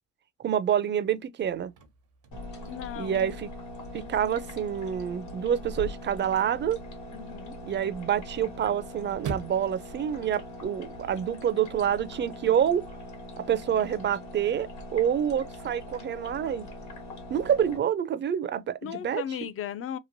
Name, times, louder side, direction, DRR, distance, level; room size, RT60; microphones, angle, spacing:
voice 1, 0.4-1.7 3.0-3.5 3.9-6.8 7.6-12.8 13.4-16.7 17.3-19.2, right 9 dB, 40° right, 0.4 m, -27 dB
Chirp tweet / Car / Slam, 1.4-11.4, right 5 dB, 85° right, 0.9 m, -47 dB
sound 1, 2.3-17.8, left 1 dB, 75° left, 1.2 m, -42 dB
voice 2, 2.7-3.3 7.1-7.6 18.8-20.0, left 9 dB, 50° left, 0.4 m, -36 dB
3.0 x 2.5 x 2.5 m
cardioid pair, 90°, 30 cm